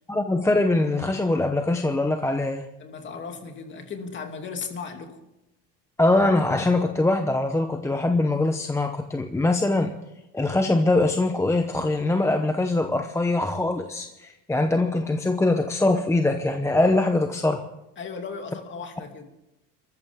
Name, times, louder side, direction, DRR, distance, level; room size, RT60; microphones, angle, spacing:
voice 1, 0.1-2.7 6.0-9.9 10.3-17.6, left 2 dB, 10° left, 5 dB, 0.8 m, -23 dB
voice 2, 2.8-5.2 18.0-19.2, left 5 dB, 35° left, 4 dB, 2.7 m, -36 dB
27.0 x 14.0 x 3.7 m, 0.91 s
cardioid pair, 150°, 35 cm